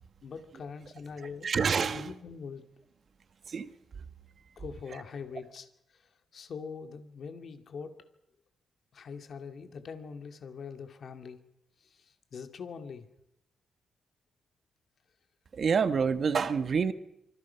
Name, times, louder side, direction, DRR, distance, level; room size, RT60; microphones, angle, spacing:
voice 1, 0.2-1.5 1.9-2.7 4.6-5.7 5.9-8.0 8.9-11.4 11.8-13.1, left 5 dB, 55° left, 6 dB, 2.5 m, -43 dB
voice 2, 1.2-2.1 3.5-3.7 15.5-16.9, right 6 dB, 45° right, 10 dB, 1.5 m, -28 dB
26.5 x 24.5 x 5.9 m, 0.79 s
cardioid pair, 120°, 0 cm